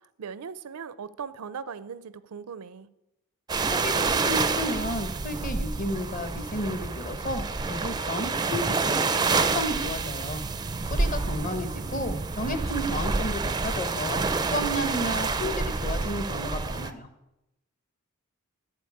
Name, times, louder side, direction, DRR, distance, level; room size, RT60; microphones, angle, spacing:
voice 1, 0.2-2.9 11.4-11.6, right 6 dB, 85° right, 0.5 m, -39 dB
sound 1, 3.5-16.9, right 4 dB, 20° right, 0.4 m, -28 dB
voice 2, 3.7-10.4 10.9-14.2 14.5-17.1, equal, 40° left, 1.1 m, -32 dB
11.0 x 4.9 x 8.5 m
head